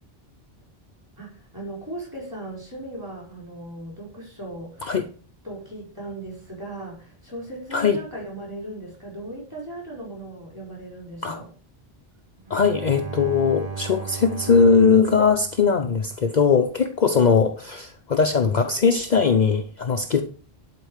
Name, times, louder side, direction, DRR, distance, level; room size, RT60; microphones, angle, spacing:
voice 1, 1.2-4.9 5.4-11.5, right 1 dB, 20° right, 4.9 m, -37 dB
Bowed string instrument, 12.4-16.2, right 6 dB, 40° right, 1.0 m, -36 dB
voice 2, 12.5-20.2, left 5 dB, 45° left, 0.8 m, -20 dB
11.5 x 4.5 x 6.5 m
omnidirectional pair, 1.1 m